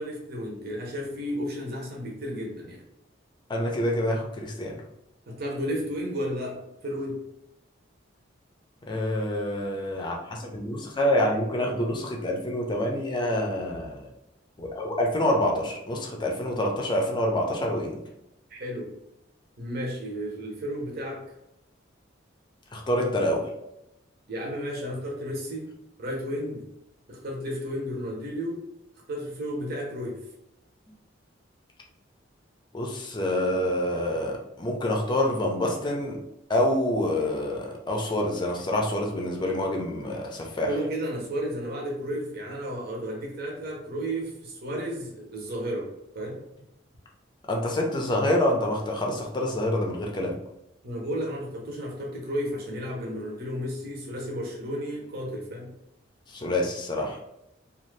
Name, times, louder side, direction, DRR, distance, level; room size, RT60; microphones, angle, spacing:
voice 1, 0.0-2.8 5.3-7.2 18.5-18.9 19.6-21.3 24.3-25.7 26.0-26.6 27.1-28.6 29.1-30.2 40.7-46.4 50.8-55.7, equal, 55° right, -2 dB, 0.8 m, -33 dB
voice 2, 3.5-4.8 8.8-14.0 14.6-18.0 22.7-23.5 32.7-36.2 36.5-40.7 47.5-50.3 56.3-57.2, left 1 dB, 25° left, 0 dB, 0.5 m, -27 dB
2.6 x 2.4 x 3.2 m, 0.84 s
head